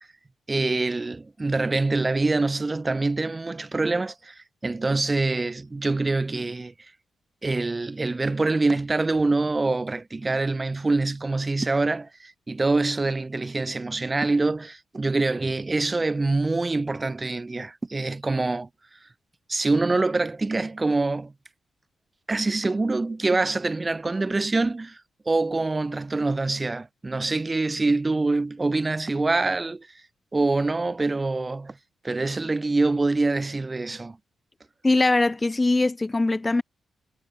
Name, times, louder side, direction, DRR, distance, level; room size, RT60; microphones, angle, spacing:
voice 1, 0.5-6.7 7.4-18.7 19.5-21.3 22.3-25.0 25.2-29.9 30.3-31.8 32.0-34.2, right 3 dB, 20° right, 1.6 m, -25 dB
voice 2, 34.8-36.6, left 2 dB, 15° left, 0.7 m, -21 dB
wide cardioid pair, 150°, 0 cm